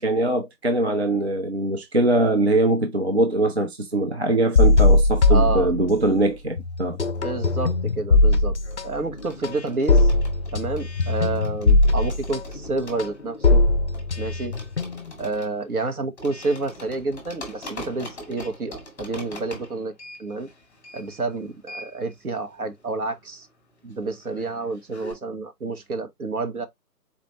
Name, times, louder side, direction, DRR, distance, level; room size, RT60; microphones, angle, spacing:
voice 1, 0.0-7.0, right 2 dB, 45° right, 0.5 m, -22 dB
sound 1, 4.6-6.3 6.6-15.2, left 2 dB, 45° left, 0.4 m, -20 dB
voice 2, 5.3-5.7 7.2-8.6 8.8-10.1 10.5-13.6 14.2-14.6 15.2-19.9 20.2-20.5 20.9-23.5 23.8-26.7, right 3 dB, 60° right, 1.2 m, -29 dB
sound 2, 6.3-7.6 7.8-25.1, left 1 dB, 10° left, 1.3 m, -43 dB
4.2 x 3.0 x 2.9 m
figure-of-eight pair, 155°, 49 cm